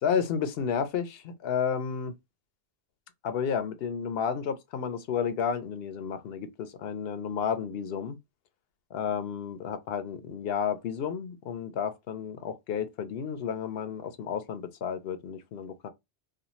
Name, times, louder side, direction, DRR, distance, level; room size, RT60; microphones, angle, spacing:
voice 1, 0.0-2.1 3.2-8.2 8.9-15.9, left 7 dB, 65° left, 0.7 m, -31 dB
2.5 x 2.3 x 2.9 m
omnidirectional pair, 1.2 m